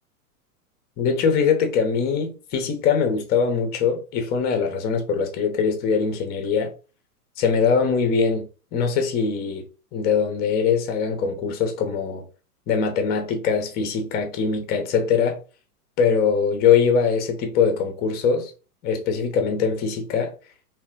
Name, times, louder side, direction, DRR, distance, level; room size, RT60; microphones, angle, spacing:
voice 1, 1.0-6.7 7.4-9.6 9.9-12.2 12.7-15.4 16.0-18.5 18.8-20.3, left 6 dB, 20° left, 0.9 m, -22 dB
4.0 x 2.7 x 3.8 m
figure-of-eight pair, 105°, 46 cm